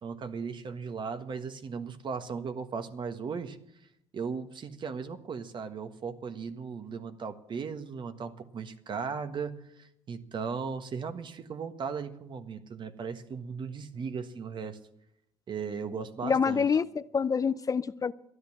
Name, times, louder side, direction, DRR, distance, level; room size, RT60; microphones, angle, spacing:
voice 1, 0.0-3.6 4.1-14.8 15.5-16.7, right 5 dB, 45° right, 9 dB, 1.5 m, -37 dB
voice 2, 16.2-18.1, left 6 dB, 35° left, 15 dB, 0.5 m, -27 dB
13.0 x 10.5 x 7.2 m, 0.73 s
supercardioid pair, 75°, 11 cm